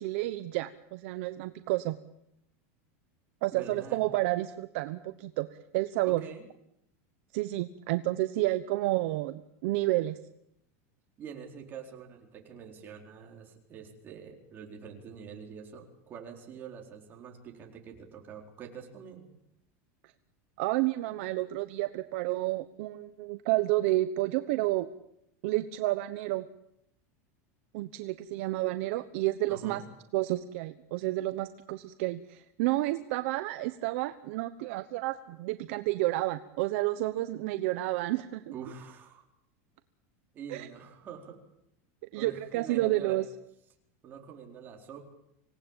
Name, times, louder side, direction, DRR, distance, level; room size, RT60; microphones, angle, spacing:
voice 1, 0.0-2.0 3.4-5.5 5.7-6.2 7.3-10.2 20.6-24.9 25.4-26.5 27.7-29.8 30.1-38.4 40.5-40.7 42.1-43.3, right 17 dB, 55° right, 11 dB, 1.0 m, -30 dB
voice 2, 3.5-4.0 6.0-6.4 11.2-19.3 29.5-29.9 38.5-39.2 40.3-41.4 42.1-43.3 44.0-45.0, right 7 dB, 25° right, 1 dB, 4.2 m, -45 dB
26.0 x 18.5 x 9.0 m, 0.78 s
supercardioid pair, 170°, 8 cm